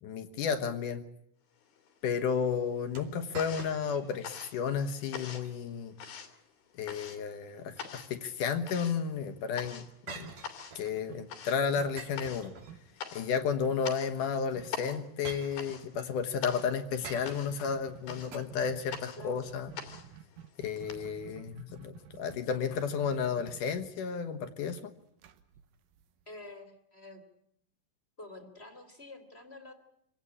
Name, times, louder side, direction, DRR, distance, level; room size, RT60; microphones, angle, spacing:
voice 1, 0.0-1.0 2.0-6.0 6.8-10.3 10.8-12.5 13.1-19.7 20.6-24.9, left 6 dB, 65° left, 8 dB, 2.7 m, -32 dB
sound 1, 1.6-2.4 2.7-21.0, left 7 dB, 85° left, 4.5 m, -45 dB
sound 2, 3.0-4.1 4.5-4.6 5.2-5.6 7.5-8.3 10.1-11.1 12.0-13.1 14.3-14.4 15.2-16.1 17.0-17.6 18.3-18.4, right 4 dB, 50° right, 3.7 m, -47 dB
sound 3, 9.6-10.8 11.1-13.0 13.6-13.9 14.2-14.3 14.6-14.9 15.7-26.5, right 9 dB, 70° right, 2.8 m, -52 dB
voice 2, 26.3-27.2 28.2-29.7, left 2 dB, 20° left, 7 dB, 2.4 m, -48 dB
26.5 x 18.0 x 8.6 m, 0.75 s
omnidirectional pair, 4.2 m